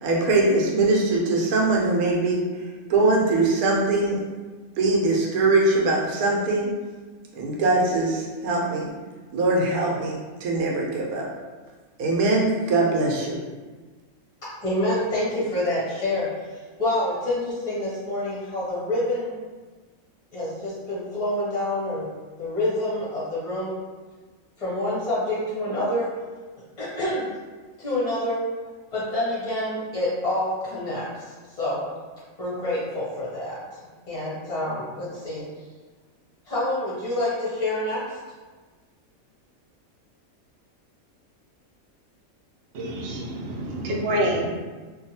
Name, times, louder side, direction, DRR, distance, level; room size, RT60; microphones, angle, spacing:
voice 1, 0.0-2.6 2.9-4.2 4.8-6.7 7.3-8.9 9.3-11.3 12.0-13.4, right 2 dB, 85° right, -2 dB, 1.1 m, -22 dB
voice 2, 14.6-19.3 20.3-22.1 22.4-23.7 24.6-26.1 26.8-27.3 27.8-28.4 28.9-31.0 31.6-31.8 32.4-33.6 34.1-35.4 36.5-38.0, left 1 dB, 35° left, -9 dB, 0.6 m, -27 dB
voice 3, 42.7-44.5, right 1 dB, 65° right, -1 dB, 0.6 m, -27 dB
2.7 x 2.3 x 2.7 m, 1.3 s
omnidirectional pair, 1.5 m